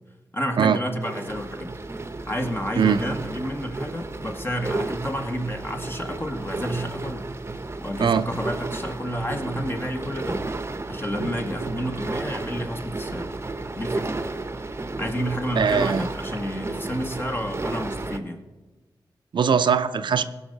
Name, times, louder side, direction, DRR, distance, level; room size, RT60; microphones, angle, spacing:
voice 1, 0.3-1.8 2.3-7.3 7.8-10.4 10.9-13.3 13.8-14.2 15.0-18.4, equal, 30° left, 4 dB, 1.6 m, -30 dB
sound 1, 1.0-18.2, right 2 dB, 30° right, 0.8 m, -33 dB
voice 2, 15.6-16.1 19.3-20.2, right 7 dB, 80° right, 11 dB, 0.5 m, -20 dB
16.5 x 5.5 x 6.6 m, 1.2 s
cardioid pair, 60°, 8 cm